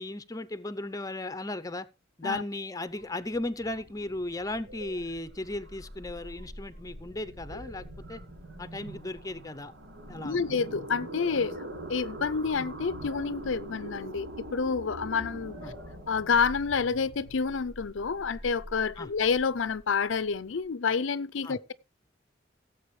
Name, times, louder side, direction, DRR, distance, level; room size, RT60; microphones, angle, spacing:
voice 1, 0.0-1.9 2.2-8.2 8.6-9.7 10.1-10.4 15.6-15.8 19.0-19.1 21.4-21.6, left 2 dB, 20° left, 0.6 m, -36 dB
sound 1, 2.9-20.6, right 1 dB, 85° right, 5.4 m, -44 dB
voice 2, 10.2-15.6 16.1-21.7, left 5 dB, 75° left, 0.5 m, -29 dB
17.5 x 7.7 x 3.2 m
head